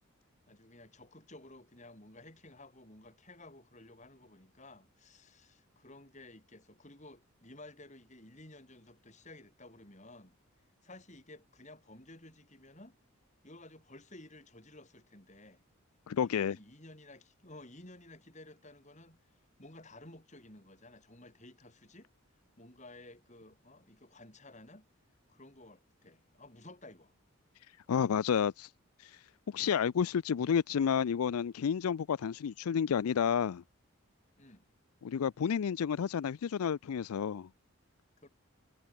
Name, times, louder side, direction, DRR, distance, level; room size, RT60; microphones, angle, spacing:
voice 1, 0.5-10.3 10.8-13.0 13.4-15.6 16.2-19.2 19.6-22.1 22.6-24.9 25.3-27.1 34.4-34.6 38.2-38.3, left 2 dB, 35° left, 6.6 m, -54 dB
voice 2, 16.1-16.6 27.9-28.7 29.0-29.2 29.5-33.6 35.0-37.5, left 7 dB, 85° left, 0.4 m, -30 dB
head